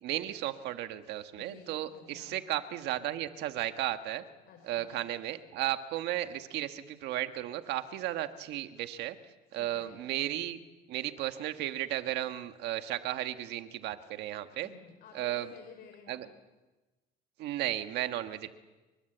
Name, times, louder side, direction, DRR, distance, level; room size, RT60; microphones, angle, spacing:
voice 1, 0.0-4.2 4.6-9.2 9.5-10.6 10.9-14.7 15.1-15.5 16.1-16.3 17.4-18.5, right 13 dB, 85° right, 8 dB, 1.6 m, -34 dB
voice 2, 1.4-2.4 4.5-5.0 9.5-10.0 14.6-16.2, left 7 dB, 70° left, 5 dB, 4.3 m, -53 dB
29.0 x 23.5 x 8.0 m, 1.2 s
cardioid pair, 110°, 17 cm